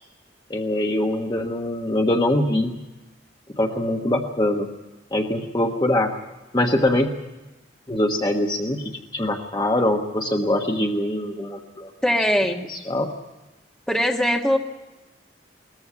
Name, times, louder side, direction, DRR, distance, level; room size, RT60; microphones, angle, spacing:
voice 1, 0.5-2.7 3.5-4.7 5.1-6.1 6.5-7.1 7.9-11.9 12.7-13.1, left 1 dB, 20° left, 2 dB, 1.3 m, -23 dB
voice 2, 12.0-12.6 13.9-14.6, equal, 5° left, 0 dB, 1.5 m, -21 dB
20.5 x 14.5 x 9.5 m, 1.1 s
head